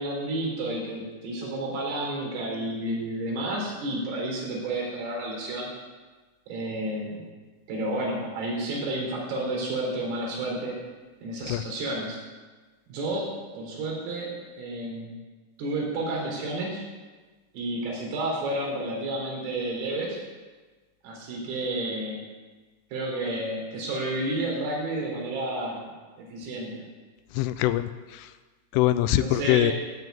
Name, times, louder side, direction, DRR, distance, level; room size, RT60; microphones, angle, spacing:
voice 1, 0.0-5.7 6.5-7.2 7.7-10.8 11.2-12.2 12.9-13.3 13.6-14.3 14.6-15.1 15.6-16.8 17.5-20.2 21.0-22.2 22.9-25.9 26.2-26.8 29.1-29.7, right 1 dB, 80° right, -2 dB, 6.6 m, -31 dB
voice 2, 27.3-28.3 28.7-29.7, left 15 dB, 85° left, 12 dB, 3.1 m, -23 dB
16.5 x 7.8 x 9.3 m, 1.3 s
omnidirectional pair, 5.8 m